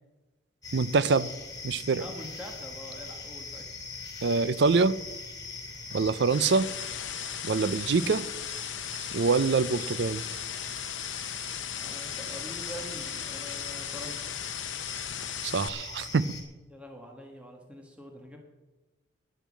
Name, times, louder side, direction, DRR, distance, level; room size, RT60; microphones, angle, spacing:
sound 1, 0.6-16.4, left 4 dB, 20° left, 2.5 m, -41 dB
voice 1, 0.7-1.3 1.6-2.0 4.2-4.9 5.9-6.7 7.4-8.3 9.1-10.2 15.4-16.4, right 4 dB, 65° right, 0.4 m, -25 dB
voice 2, 2.0-3.6 11.8-14.3 16.7-18.4, equal, 5° right, 1.4 m, -44 dB
sound 2, 5.9-15.7, left 11 dB, 80° left, 0.6 m, -38 dB
10.5 x 10.5 x 7.4 m
head